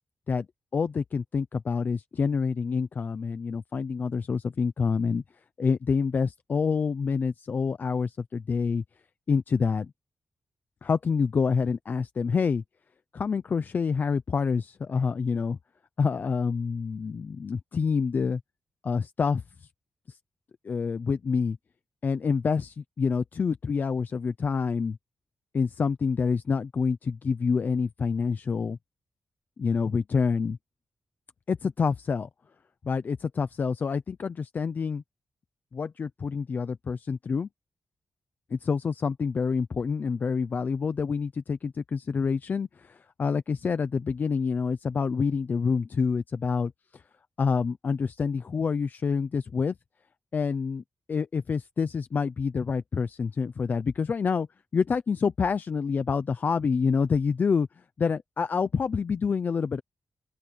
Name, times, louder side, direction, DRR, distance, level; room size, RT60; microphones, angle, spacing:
voice 1, 0.7-5.2 5.6-8.8 9.3-9.9 10.8-12.6 13.1-15.6 16.0-18.4 18.8-19.4 20.1-20.2 20.6-21.6 22.0-25.0 25.5-28.8 29.6-30.6 31.5-32.3 32.8-35.0 35.7-37.5 38.5-47.0 47.4-49.8 50.3-50.8 51.1-54.5 54.7-57.7 58.0-59.8, left 5 dB, 50° left, 0.7 m, -27 dB
open air
wide cardioid pair, 115°, 4 cm